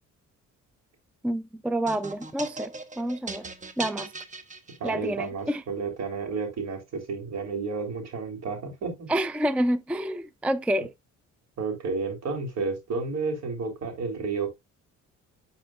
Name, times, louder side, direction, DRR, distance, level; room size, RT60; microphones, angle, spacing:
voice 1, 1.2-3.5 3.8-4.1 4.8-5.6 9.1-10.9, right 1 dB, 5° right, 0.4 m, -28 dB
sound 1, 1.9-5.2, right 3 dB, 25° right, 1.1 m, -39 dB
voice 2, 4.8-9.1 11.6-14.5, right 4 dB, 60° right, 3.1 m, -31 dB
10.0 x 4.3 x 2.4 m
cardioid pair, 90°, 30 cm